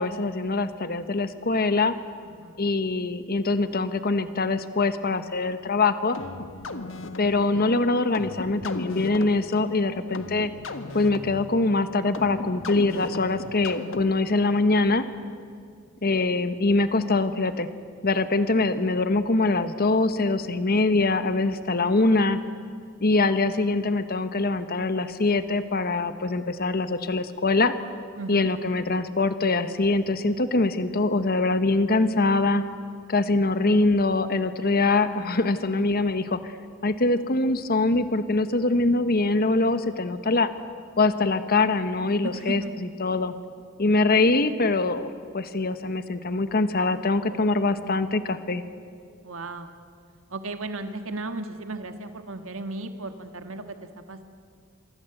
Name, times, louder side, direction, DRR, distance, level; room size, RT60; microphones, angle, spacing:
voice 1, 0.0-1.9 2.6-6.2 7.2-10.5 10.9-15.0 16.0-17.7 18.0-22.4 23.0-27.7 28.3-32.6 33.1-36.6 36.8-40.5 41.0-42.6 43.0-43.3 43.8-48.6, left 3 dB, 50° left, 11 dB, 1.2 m, -23 dB
voice 2, 2.2-2.6 22.0-22.3 23.2-23.7 28.2-28.5 42.2-42.7 49.2-49.7 50.3-54.2, right 2 dB, 80° right, 7 dB, 1.6 m, -36 dB
sound 1, 6.1-14.4, left 2 dB, 70° left, 1.6 m, -37 dB
27.0 x 24.0 x 8.0 m, 2.2 s
head